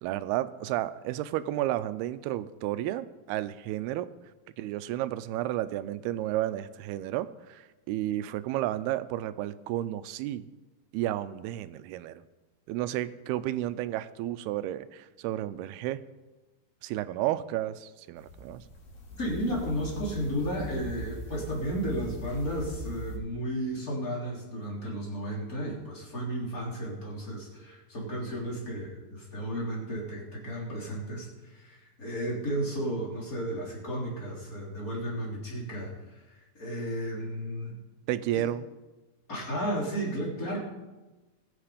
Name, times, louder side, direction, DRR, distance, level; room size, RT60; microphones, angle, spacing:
voice 1, 0.0-4.1 4.6-10.4 10.9-12.2 12.7-16.0 16.8-18.7 38.1-38.6, right 13 dB, 85° right, 13 dB, 2.6 m, -32 dB
sound 1, 18.2-23.2, equal, 50° left, 3.7 m, -41 dB
voice 2, 19.2-35.9 36.3-37.8 38.3-38.4 39.3-40.6, equal, 20° left, -3 dB, 3.4 m, -33 dB
21.0 x 8.1 x 5.0 m, 1.2 s
omnidirectional pair, 4.6 m